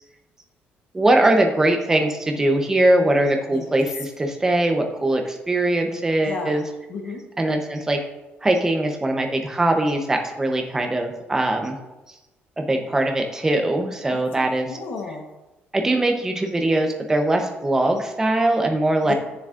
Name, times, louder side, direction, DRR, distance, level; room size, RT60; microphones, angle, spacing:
voice 1, 0.9-6.6 7.4-8.0 8.4-11.8 12.6-14.7 15.7-19.1, right 1 dB, 15° right, 4 dB, 0.8 m, -21 dB
voice 2, 6.2-6.6 6.9-7.2 14.1-15.3 19.0-19.1, left 4 dB, 55° left, 2 dB, 1.2 m, -34 dB
9.1 x 7.0 x 2.5 m, 1.0 s
cardioid pair, 155°, 4 cm